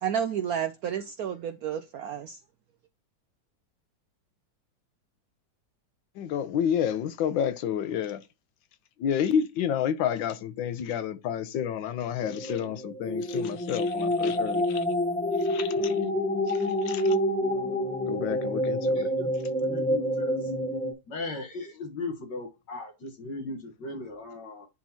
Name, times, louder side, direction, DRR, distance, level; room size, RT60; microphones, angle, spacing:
voice 1, 0.0-2.4, right 8 dB, 70° right, 0.9 m, -31 dB
voice 2, 6.2-8.2 9.0-14.8 15.4-16.1 16.5-16.6 16.8-17.1 18.1-19.1, left 8 dB, 90° left, 1.5 m, -30 dB
sound 1, 12.2-20.9, left 1 dB, 5° left, 0.7 m, -28 dB
voice 3, 18.9-19.3 19.6-20.5 21.1-24.7, left 2 dB, 70° left, 2.0 m, -37 dB
10.0 x 3.8 x 2.8 m
omnidirectional pair, 2.0 m